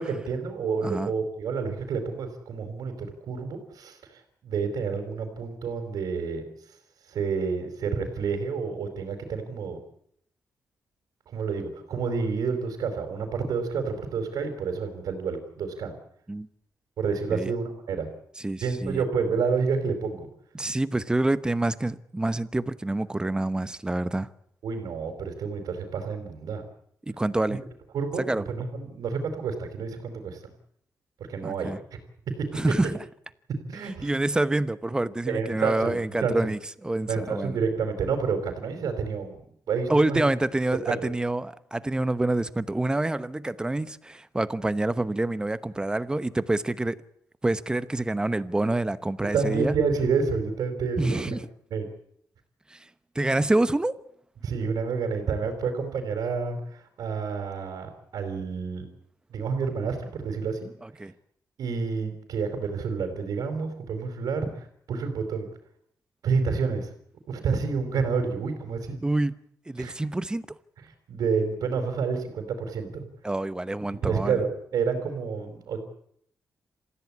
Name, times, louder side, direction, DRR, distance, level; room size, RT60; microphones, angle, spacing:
voice 1, 0.0-6.4 7.1-9.8 11.3-15.9 17.0-18.1 18.6-20.3 24.6-26.6 27.9-30.4 31.3-31.7 32.4-32.5 33.5-34.1 35.3-36.5 37.1-39.3 39.7-40.3 40.9-41.0 49.3-51.4 51.7-51.9 54.4-58.9 59.3-60.7 61.6-65.5 66.2-66.9 67.3-69.0 69.8-69.9 71.1-73.0 74.0-75.8, right 5 dB, 80° right, 4.4 m, -29 dB
voice 2, 18.4-19.0 20.5-24.3 27.1-27.6 28.3-28.4 31.4-31.8 32.5-32.9 34.0-37.6 39.9-47.0 47.4-49.7 51.0-51.4 52.7-52.8 53.1-53.9 60.8-61.1 69.0-69.4 69.7-70.5 73.2-74.4, right 2 dB, 15° right, 0.9 m, -27 dB
27.5 x 15.5 x 8.6 m
wide cardioid pair, 135°, 6 cm